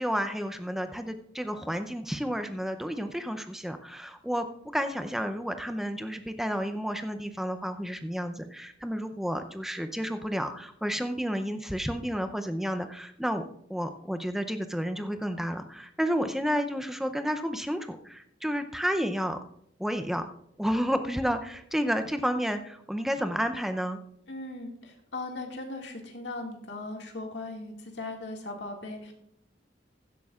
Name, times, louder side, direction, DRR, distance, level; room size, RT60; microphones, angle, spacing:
voice 1, 0.0-4.5 4.7-19.4 19.8-20.3 20.6-24.0, equal, ahead, 8 dB, 0.6 m, -31 dB
voice 2, 24.3-29.1, left 2 dB, 70° left, 1 dB, 2.0 m, -38 dB
15.5 x 11.5 x 2.4 m, 0.73 s
head